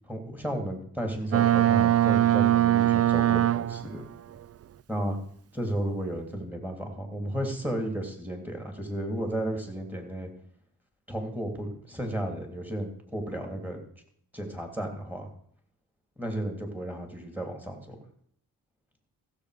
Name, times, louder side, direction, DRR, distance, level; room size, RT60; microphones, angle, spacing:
voice 1, 0.1-4.0 4.9-5.2 5.5-10.3 11.1-13.8 14.3-15.3 16.2-18.0, right 1 dB, 5° right, 3 dB, 3.0 m, -33 dB
Boat Water vehicle, 1.3-4.0, right 13 dB, 40° right, 0.4 m, -21 dB
15.0 x 7.3 x 5.0 m, 0.63 s
cardioid pair, 75°, 41 cm